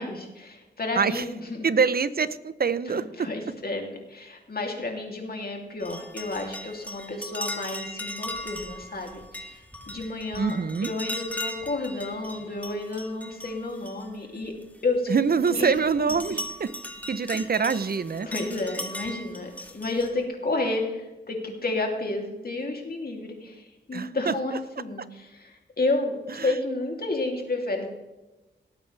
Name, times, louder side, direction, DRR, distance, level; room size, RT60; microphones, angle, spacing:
voice 1, 0.0-1.6 2.9-10.6 10.8-14.5 14.8-15.2 15.5-15.7 17.3-17.5 18.2-27.9, left 2 dB, 55° left, 1 dB, 2.9 m, -31 dB
voice 2, 1.6-3.3 10.4-10.9 15.1-16.7 17.1-18.3 23.9-24.3 26.4-26.5, right 5 dB, 55° right, 15 dB, 0.7 m, -25 dB
sound 1, 5.8-14.6 15.1-20.1, left 1 dB, 10° left, 2.0 m, -38 dB
18.5 x 8.9 x 3.4 m, 1.1 s
cardioid pair, 55°, 19 cm